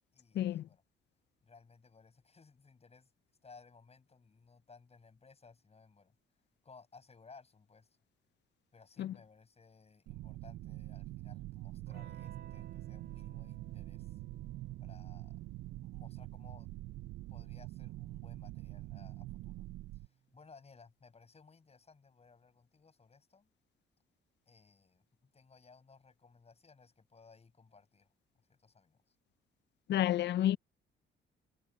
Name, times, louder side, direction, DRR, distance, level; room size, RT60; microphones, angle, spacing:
voice 1, 0.1-0.8 1.4-3.1 3.4-6.1 6.6-7.9 8.7-14.2 14.8-15.4 15.8-16.7 17.3-19.6 19.9-23.5 24.5-25.0 25.3-28.1 28.4-29.2, left 4 dB, 30° left, 7.5 m, -60 dB
sound 1, 10.1-20.1, right 18 dB, 90° right, 0.5 m, -45 dB
Electric guitar / Strum, 11.9-20.2, right 9 dB, 65° right, 3.2 m, -56 dB
voice 2, 29.9-30.6, left 12 dB, 60° left, 0.5 m, -30 dB
cardioid pair, 90°, 20 cm